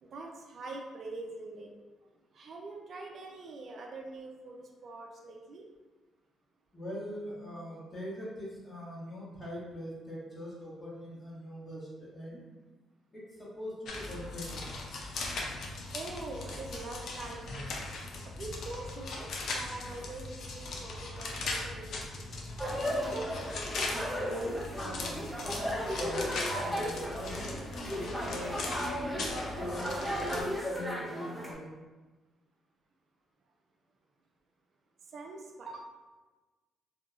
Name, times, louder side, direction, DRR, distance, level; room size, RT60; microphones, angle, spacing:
voice 1, 0.0-1.7 2.3-5.6 14.1-14.2 15.9-17.7 18.2-22.3 35.1-35.8, right 2 dB, 55° right, 1 dB, 0.4 m, -44 dB
voice 2, 6.7-12.4 13.1-14.6 23.9-31.7, equal, 30° left, -8 dB, 1.1 m, -42 dB
sound 1, 13.8-30.4, left 2 dB, 70° left, 0.4 m, -39 dB
sound 2, 22.6-31.5, equal, ahead, 0.6 m, -35 dB
2.7 x 2.7 x 2.4 m, 1.2 s
cardioid pair, 90°, 0 cm